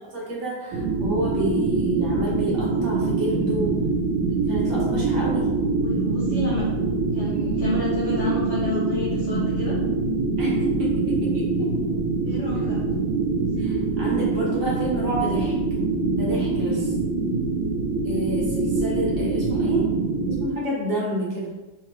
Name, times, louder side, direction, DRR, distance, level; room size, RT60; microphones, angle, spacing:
voice 1, 0.1-3.7 4.5-5.5 10.4-11.9 13.6-15.5 16.1-16.9 18.0-19.9 20.4-21.5, right 1 dB, 60° right, -5 dB, 1.3 m, -29 dB
sound 1, 0.7-20.5, right 3 dB, 85° right, 1.5 m, -24 dB
voice 2, 5.8-6.7 7.1-9.7 12.2-12.8 16.6-16.8, left 3 dB, 90° left, -8 dB, 0.6 m, -30 dB
3.6 x 2.9 x 3.0 m, 1.1 s
omnidirectional pair, 2.4 m